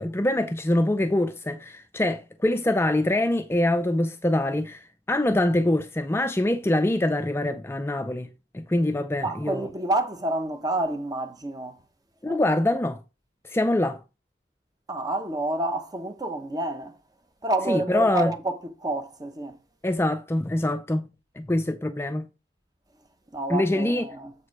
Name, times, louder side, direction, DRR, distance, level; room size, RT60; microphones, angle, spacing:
voice 1, 0.0-8.3 8.5-9.7 12.2-13.0 13.5-14.0 17.7-18.3 19.8-21.0 21.4-22.3 23.5-24.1, left 1 dB, 15° left, 0.4 m, -24 dB
voice 2, 9.2-11.8 12.2-12.4 14.9-17.0 17.4-19.6 21.8-21.9 23.3-24.3, right 2 dB, 20° right, 1.0 m, -29 dB
7.4 x 4.8 x 4.7 m
head